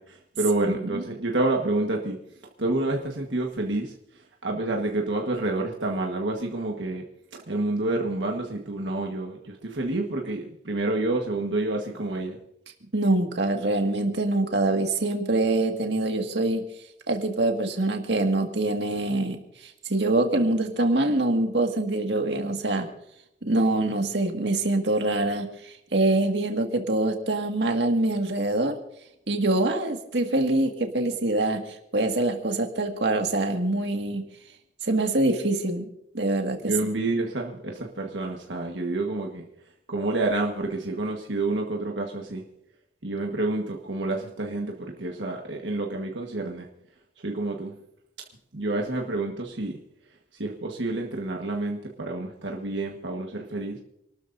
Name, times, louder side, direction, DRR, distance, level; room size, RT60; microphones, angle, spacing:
voice 1, 0.0-2.2 2.6-7.1 7.5-12.4 36.6-39.4 39.9-42.4 43.0-46.7 47.2-47.7 48.5-49.8 50.3-53.8, right 2 dB, 85° right, 1 dB, 1.5 m, -28 dB
voice 2, 0.6-1.0 12.9-16.6 17.1-19.4 19.9-22.9 23.4-28.8 29.3-31.6 31.9-34.2 34.8-35.9 36.1-36.7, right 2 dB, 70° right, 3 dB, 2.0 m, -24 dB
28.0 x 13.0 x 2.7 m, 0.78 s
head